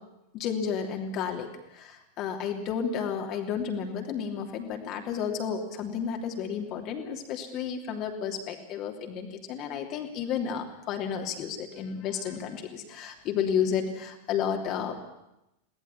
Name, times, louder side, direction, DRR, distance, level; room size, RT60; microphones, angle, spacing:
voice 1, 0.3-1.5 1.7-15.0, left 7 dB, 35° left, 3 dB, 3.0 m, -32 dB
22.5 x 18.0 x 8.7 m, 0.89 s
figure-of-eight pair, 90°, 0 cm